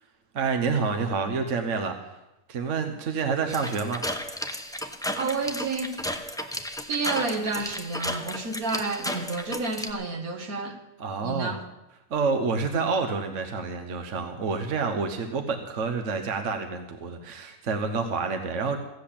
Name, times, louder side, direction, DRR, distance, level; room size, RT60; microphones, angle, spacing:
voice 1, 0.3-2.1 2.5-4.0 11.0-11.5 12.1-18.8, right 4 dB, 60° right, 6 dB, 1.3 m, -28 dB
sound 1, 3.5-9.9, equal, 5° left, 0.7 m, -33 dB
voice 2, 5.2-6.1 6.9-10.8 11.2-11.6, right 3 dB, 75° right, 5 dB, 1.9 m, -30 dB
15.5 x 8.0 x 8.5 m, 0.94 s
omnidirectional pair, 1.5 m